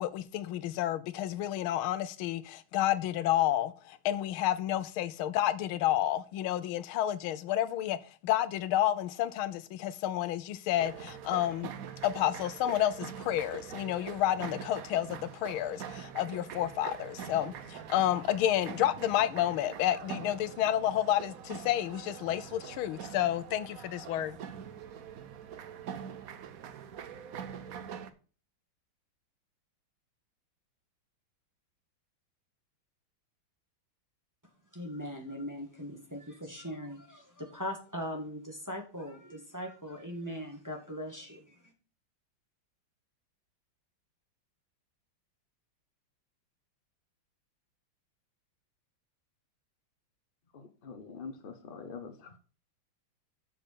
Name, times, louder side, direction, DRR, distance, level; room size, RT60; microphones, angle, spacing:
voice 1, 0.0-8.0 8.2-11.7 12.0-24.4, left 12 dB, 85° left, 1.5 m, -30 dB
sound 1, 10.7-28.1, right 8 dB, 65° right, 0.9 m, -44 dB
voice 2, 34.7-41.6, equal, 10° right, 1.4 m, -40 dB
voice 3, 50.5-52.4, left 5 dB, 55° left, 0.5 m, -45 dB
6.7 x 5.5 x 6.3 m
omnidirectional pair, 2.2 m